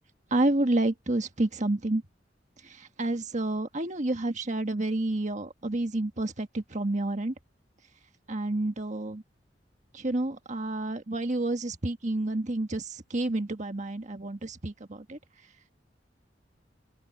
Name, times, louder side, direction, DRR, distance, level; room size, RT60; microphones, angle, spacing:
voice 1, 0.3-2.0 2.6-7.3 8.3-9.2 9.9-15.2, right 2 dB, 40° right, 1.5 m, -29 dB
open air
head